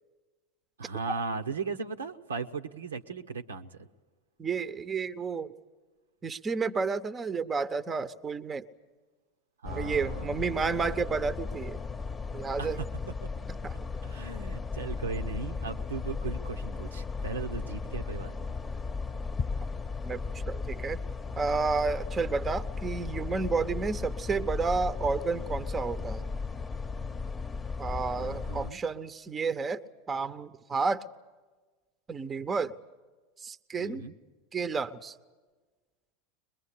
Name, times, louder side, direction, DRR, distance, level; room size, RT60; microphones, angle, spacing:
voice 1, 0.8-3.9 9.6-10.5 12.6-12.9 13.2-13.6 14.0-18.3 28.2-28.8 33.8-34.1, right 4 dB, 80° right, 6 dB, 1.1 m, -37 dB
voice 2, 4.4-5.5 6.2-8.7 9.7-11.8 12.3-12.8 13.6-13.7 20.0-21.0 21.4-26.2 27.8-29.8 30.1-31.0 32.1-32.8 33.4-34.0 34.5-35.1, right 4 dB, 20° right, 13 dB, 0.9 m, -31 dB
sound 1, 9.6-28.7, left 4 dB, 20° left, 1.0 m, -36 dB
22.5 x 22.0 x 8.5 m, 1.3 s
figure-of-eight pair, 80°, 0 cm